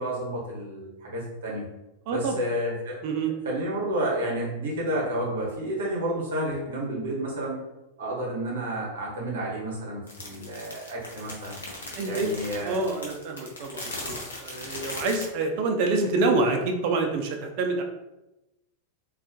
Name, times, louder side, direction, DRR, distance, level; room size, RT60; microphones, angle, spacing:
voice 1, 0.0-1.6 2.1-3.0 3.4-7.6 8.0-11.6 12.0-12.8, right 1 dB, 60° right, -2 dB, 0.8 m, -30 dB
voice 2, 2.1-2.4 3.0-3.3 11.9-12.3 12.6-17.8, right 3 dB, 45° right, 3 dB, 0.4 m, -27 dB
sound 1, 10.1-15.3, left 2 dB, 70° left, 0.6 m, -38 dB
2.3 x 2.0 x 2.6 m, 0.95 s
figure-of-eight pair, 90°, 0 cm